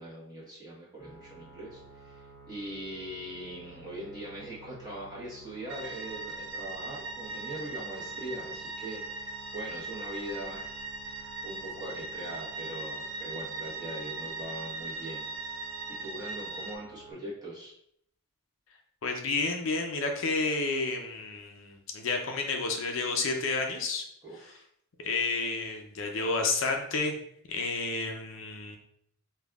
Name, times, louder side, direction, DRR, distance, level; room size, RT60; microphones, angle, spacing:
voice 1, 0.0-10.8 11.0-15.7 16.0-17.7 24.2-24.6, right 1 dB, 20° right, -7 dB, 1.1 m, -41 dB
sound 1, 1.0-17.1, right 2 dB, 15° left, 1.1 m, -53 dB
sound 2, 5.7-16.8, right 3 dB, 60° right, 0.4 m, -39 dB
voice 2, 19.0-24.0 25.0-27.2 27.5-28.8, left 3 dB, 65° left, 3 dB, 0.5 m, -30 dB
5.1 x 2.3 x 2.3 m, 0.70 s
head